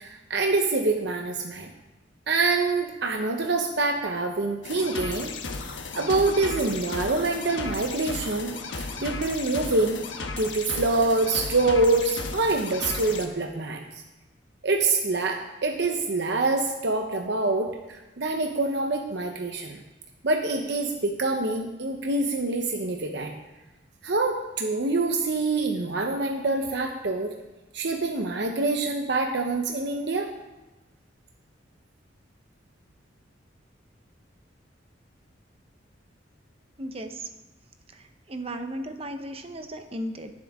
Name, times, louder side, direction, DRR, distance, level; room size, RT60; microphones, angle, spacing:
voice 1, 0.0-1.7 2.3-5.3 5.9-8.5 8.8-10.0 10.4-13.8 14.6-19.8 20.2-23.3 24.0-27.3 27.7-30.3, right 3 dB, 65° right, 3 dB, 0.9 m, -25 dB
sound 1, 4.6-13.3, left 3 dB, 85° left, 1.1 m, -35 dB
voice 2, 36.8-37.3 37.9-40.3, right 1 dB, 30° right, 7 dB, 0.9 m, -35 dB
18.0 x 7.6 x 3.6 m, 1.1 s
head